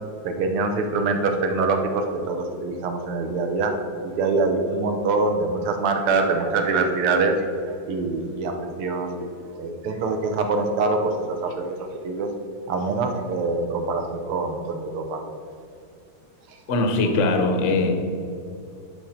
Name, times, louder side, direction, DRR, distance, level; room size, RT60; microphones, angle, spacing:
voice 1, 0.2-9.1 9.5-12.3 12.7-15.2 16.5-16.6, right 3 dB, 80° right, 5 dB, 1.8 m, -24 dB
voice 2, 16.7-17.9, left 2 dB, 50° left, 4 dB, 0.9 m, -21 dB
10.5 x 5.1 x 4.3 m, 2.5 s
omnidirectional pair, 2.4 m